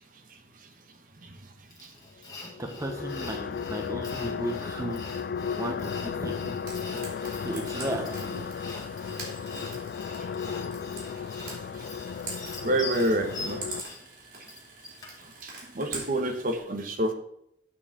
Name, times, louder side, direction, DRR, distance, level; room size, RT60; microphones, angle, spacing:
Sawing, 1.7-15.3, left 2 dB, 20° left, 1.9 m, -43 dB
sound 1, 2.4-13.8, left 6 dB, 60° left, 0.3 m, -35 dB
voice 1, 2.4-5.0 5.6-6.4 7.4-8.4, right 1 dB, 20° right, 3 dB, 1.0 m, -35 dB
Frying (food), 6.6-16.6, right 3 dB, 70° right, 3.7 m, -44 dB
voice 2, 12.6-13.6 15.7-17.1, right 1 dB, 50° right, 5 dB, 1.1 m, -27 dB
8.7 x 4.7 x 7.2 m, 0.75 s
head